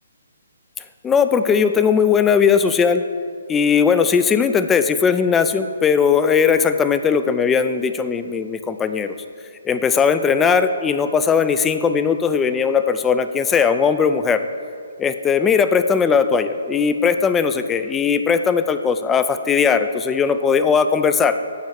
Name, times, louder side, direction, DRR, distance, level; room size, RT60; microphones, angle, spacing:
voice 1, 1.0-3.0 3.5-9.1 9.6-14.4 15.0-21.4, left 6 dB, 15° left, 10 dB, 0.4 m, -18 dB
9.0 x 4.5 x 6.8 m, 2.2 s
figure-of-eight pair, 140°, 0 cm